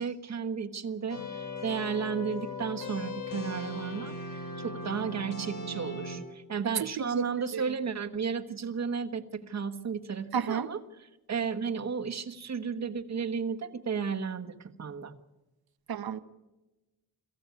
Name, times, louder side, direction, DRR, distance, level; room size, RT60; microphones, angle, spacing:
voice 1, 0.0-10.8 11.3-15.2, right 6 dB, 45° right, 8 dB, 1.3 m, -33 dB
sound 1, 1.1-6.2, left 2 dB, 60° left, 6.2 m, -38 dB
voice 2, 10.3-10.7 15.9-16.2, right 7 dB, 75° right, 13 dB, 1.2 m, -31 dB
23.0 x 16.0 x 9.5 m, 1.1 s
wide cardioid pair, 175°, 37 cm